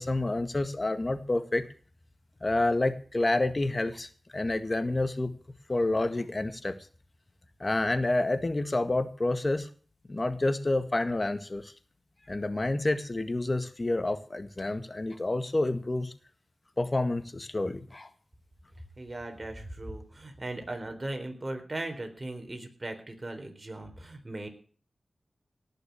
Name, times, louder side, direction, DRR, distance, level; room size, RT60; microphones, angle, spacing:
voice 1, 0.0-1.6 2.4-5.3 5.7-6.8 7.6-9.7 10.1-11.7 12.3-16.1 16.8-18.1, left 2 dB, 40° left, 10 dB, 1.8 m, -29 dB
voice 2, 19.0-24.5, right 2 dB, 35° right, 5 dB, 4.1 m, -38 dB
18.0 x 6.6 x 8.5 m, 0.43 s
cardioid pair, 45°, 0 cm